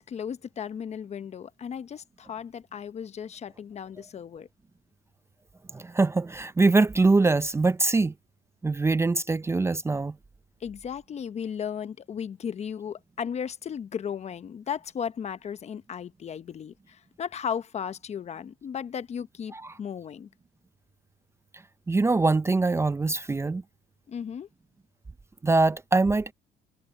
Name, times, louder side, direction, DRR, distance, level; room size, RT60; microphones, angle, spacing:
voice 1, 0.0-4.5 10.6-20.3 24.1-24.5, left 7 dB, 40° left, 0.9 m, -35 dB
voice 2, 5.7-8.1 8.6-10.1 19.5-19.6 21.9-23.6 25.4-26.3, right 3 dB, 15° right, 0.6 m, -23 dB
cardioid pair, 110°, 17 cm